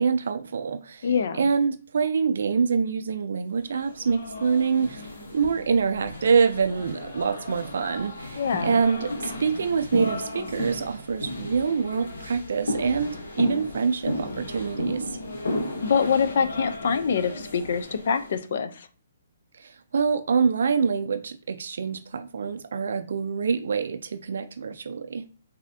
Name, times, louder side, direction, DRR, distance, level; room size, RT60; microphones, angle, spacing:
voice 1, 0.0-15.1 19.6-25.2, right 5 dB, 75° right, 0.3 m, -25 dB
voice 2, 1.0-1.4 8.4-8.8 15.8-18.9, left 6 dB, 60° left, 0.4 m, -25 dB
sound 1, 3.7-18.4, left 1 dB, 80° left, 1.2 m, -34 dB
4.1 x 2.7 x 2.6 m
hypercardioid pair, 150°, 0 cm